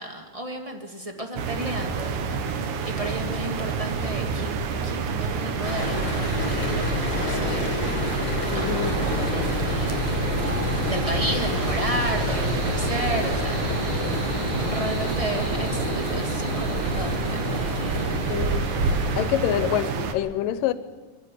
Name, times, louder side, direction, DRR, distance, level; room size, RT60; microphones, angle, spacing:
voice 1, 0.0-8.2 8.5-10.2 10.8-13.8 14.2-18.6 19.4-19.5, right 1 dB, 20° right, 0.9 m, -33 dB
sound 1, 1.4-20.1, right 5 dB, 70° right, 2.6 m, -28 dB
sound 2, 5.6-19.2, left 3 dB, 45° left, 4.6 m, -29 dB
sound 3, 5.7-16.0, left 2 dB, 10° left, 4.2 m, -42 dB
voice 2, 8.5-9.0 18.3-18.7 19.2-20.7, left 12 dB, 85° left, 2.5 m, -26 dB
23.5 x 14.5 x 8.3 m
omnidirectional pair, 3.8 m